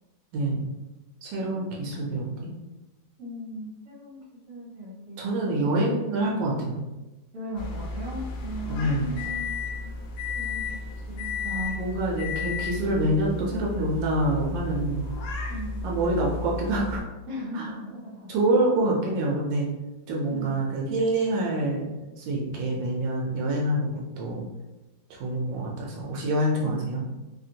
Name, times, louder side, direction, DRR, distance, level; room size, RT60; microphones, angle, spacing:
voice 1, 0.3-0.7 1.2-2.5 5.2-6.8 8.7-9.1 11.4-15.1 15.8-17.0 17.5-17.7 18.3-19.7 20.1-21.9 22.2-24.5 25.1-27.0, right 1 dB, 85° right, -2 dB, 1.3 m, -26 dB
voice 2, 3.2-4.2 4.5-5.2 7.3-9.5 9.8-10.0 10.3-11.5 15.5-15.9 17.3-18.3 20.3-20.7, equal, 55° right, -6 dB, 1.5 m, -38 dB
sound 1, 7.6-17.0, left 3 dB, 75° left, 1.2 m, -33 dB
3.3 x 2.4 x 2.7 m, 1.1 s
omnidirectional pair, 2.0 m